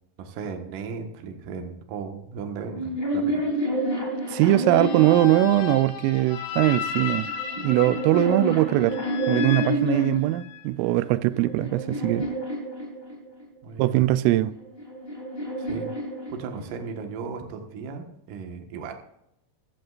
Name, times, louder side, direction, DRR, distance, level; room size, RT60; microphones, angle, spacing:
voice 1, 0.2-3.4 13.6-14.0 15.6-15.9 16.3-18.9, right 5 dB, 65° right, 2.3 m, -36 dB
sound 1, 2.6-6.0 7.0-10.4 11.0-13.4 14.5-16.9, right 1 dB, 15° left, 2.4 m, -29 dB
voice 2, 4.3-7.3 7.6-9.0 9.3-12.3 13.8-14.5, right 16 dB, 90° right, 3.1 m, -21 dB
sound 2, 4.6-10.7, left 8 dB, 80° left, 4.1 m, -34 dB
16.0 x 13.0 x 2.5 m
omnidirectional pair, 5.7 m